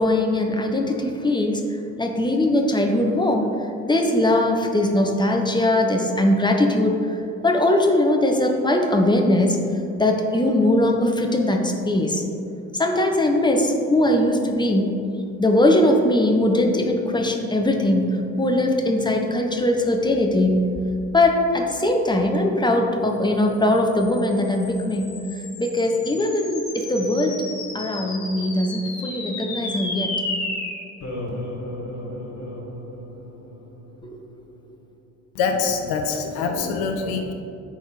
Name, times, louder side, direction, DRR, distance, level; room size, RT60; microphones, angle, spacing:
voice 1, 0.0-1.6 2.0-3.5 3.8-7.2 7.4-9.6 10.0-12.2 12.8-15.0 15.4-20.7 21.1-25.2 25.6-27.4 27.7-30.2 34.1-34.2, left 1 dB, 10° left, 2 dB, 0.9 m, -20 dB
sound 1, 23.6-34.2, left 2 dB, 45° left, 1.7 m, -34 dB
voice 2, 35.3-37.3, left 5 dB, 65° left, 4 dB, 0.8 m, -24 dB
10.0 x 4.1 x 4.1 m, 2.7 s
figure-of-eight pair, 45°, 41 cm